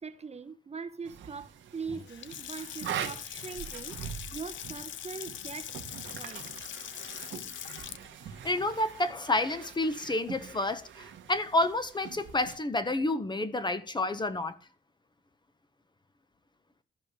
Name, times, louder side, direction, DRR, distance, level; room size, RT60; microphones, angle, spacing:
voice 1, 0.0-5.8 6.1-6.5, right 5 dB, 35° right, 1.0 m, -42 dB
sound 1, 1.0-12.6, right 9 dB, 80° right, 1.4 m, -43 dB
Water tap faucet / Sink (filling or washing) / Splash splatter, 1.9-10.0, left 11 dB, 80° left, 0.8 m, -43 dB
voice 2, 8.4-14.5, left 2 dB, 25° left, 1.2 m, -29 dB
13.5 x 5.5 x 6.7 m
cardioid pair, 90°, 19 cm